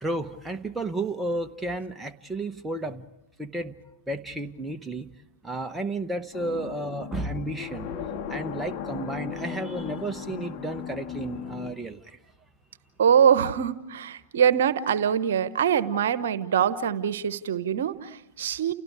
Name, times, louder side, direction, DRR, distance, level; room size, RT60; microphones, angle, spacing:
voice 1, 0.0-3.0 3.4-3.8 4.1-5.1 5.4-7.9 8.3-12.2, right 2 dB, 10° right, 6 dB, 1.0 m, -32 dB
sound 1, 6.3-11.7, left 7 dB, 40° left, 2.0 m, -36 dB
voice 2, 13.0-18.7, right 8 dB, 65° right, 14 dB, 1.1 m, -23 dB
30.0 x 29.5 x 4.9 m, 0.84 s
figure-of-eight pair, 100°, 0 cm